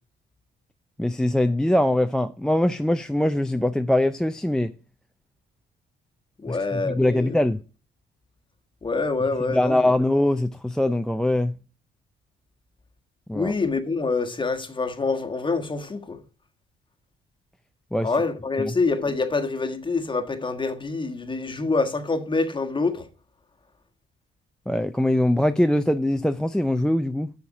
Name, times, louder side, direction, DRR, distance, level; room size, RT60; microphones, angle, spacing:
voice 1, 1.0-4.7 6.5-7.6 9.5-11.6 13.3-13.5 17.9-18.1 18.6-18.7 24.7-27.3, left 1 dB, 5° left, 0.4 m, -22 dB
voice 2, 6.4-7.3 8.8-9.9 13.3-16.2 18.0-23.1, left 3 dB, 25° left, 1.4 m, -26 dB
7.0 x 6.5 x 5.9 m
cardioid pair, 90°, 20 cm